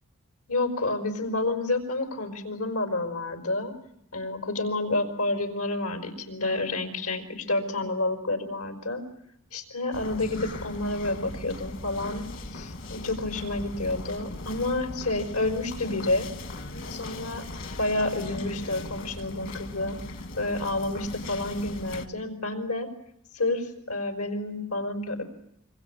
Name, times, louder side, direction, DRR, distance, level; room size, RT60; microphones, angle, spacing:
voice 1, 0.5-3.7 4.1-9.0 9.5-16.3 16.9-17.4 17.8-20.0 20.4-22.9 23.3-25.2, left 2 dB, 90° left, 6 dB, 5.3 m, -29 dB
sound 1, 9.9-22.1, left 2 dB, 60° left, 1.9 m, -39 dB
26.0 x 25.0 x 8.8 m, 0.76 s
head